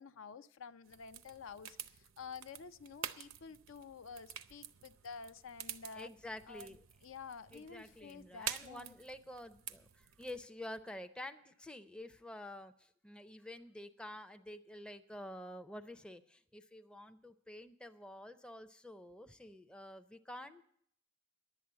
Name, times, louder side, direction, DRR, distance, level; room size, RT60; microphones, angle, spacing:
voice 1, 0.0-6.1 6.5-6.8 7.0-9.0, left 5 dB, 70° left, 12 dB, 0.5 m, -50 dB
sound 1, 0.8-10.5, right 10 dB, 75° right, 0.6 m, -49 dB
voice 2, 5.9-6.8 7.5-9.9 10.2-20.6, left 1 dB, 5° left, 8 dB, 0.5 m, -49 dB
11.0 x 8.2 x 8.7 m, 0.67 s
head